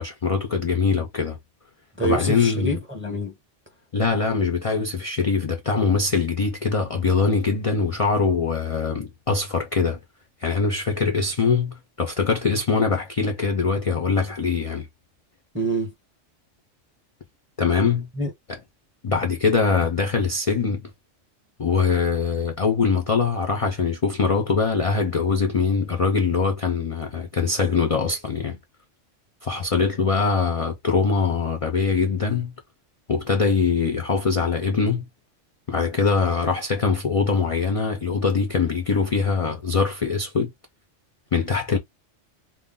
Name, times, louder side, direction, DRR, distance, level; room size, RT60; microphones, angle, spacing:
voice 1, 0.0-1.4 2.0-2.8 3.9-10.0 10.4-14.9 17.6-18.1 19.0-20.8 21.6-28.6 29.4-32.5 33.1-35.1 35.7-40.5 41.3-41.8, left 5 dB, 55° left, 0.4 m, -22 dB
voice 2, 2.0-3.3 15.5-15.9 18.1-18.3, right 2 dB, 15° right, 0.6 m, -26 dB
2.4 x 2.0 x 3.6 m
omnidirectional pair, 1.3 m